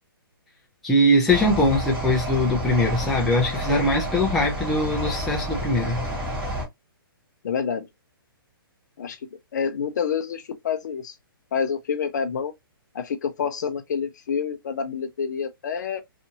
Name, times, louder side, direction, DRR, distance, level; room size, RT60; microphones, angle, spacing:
voice 1, 0.8-6.1, left 1 dB, ahead, 0.3 m, -21 dB
sound 1, 1.3-6.6, right 1 dB, 15° right, 1.3 m, -29 dB
voice 2, 7.4-7.9 9.0-9.2 9.5-11.1 11.5-12.5 12.9-16.0, left 6 dB, 50° left, 0.6 m, -27 dB
2.7 x 2.5 x 2.7 m
hypercardioid pair, 165°, 12 cm